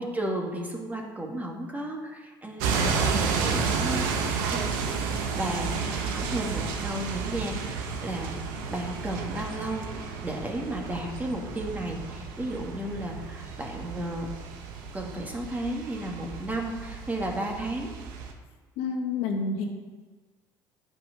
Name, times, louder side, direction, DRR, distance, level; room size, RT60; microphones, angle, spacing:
voice 1, 0.0-4.1 4.5-4.7 5.0-14.3 14.9-17.9, right 1 dB, 15° right, 0 dB, 1.9 m, -34 dB
sound 1, 2.6-18.3, right 5 dB, 85° right, 0.9 m, -32 dB
voice 2, 18.8-19.7, left 4 dB, 80° left, 2 dB, 1.3 m, -28 dB
9.2 x 5.4 x 5.1 m, 1.4 s
supercardioid pair, 80°, 10 cm